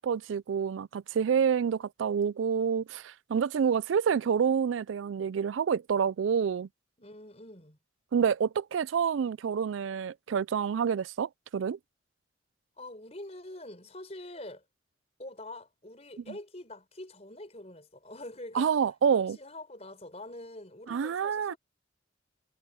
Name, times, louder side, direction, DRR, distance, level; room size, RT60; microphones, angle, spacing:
voice 1, 0.0-6.7 8.1-11.8 18.5-19.4 20.9-21.5, right 7 dB, 80° right, 0.4 m, -28 dB
voice 2, 7.0-7.8 12.8-14.6 15.2-18.7 19.4-21.6, left 1 dB, 35° left, 5.2 m, -45 dB
head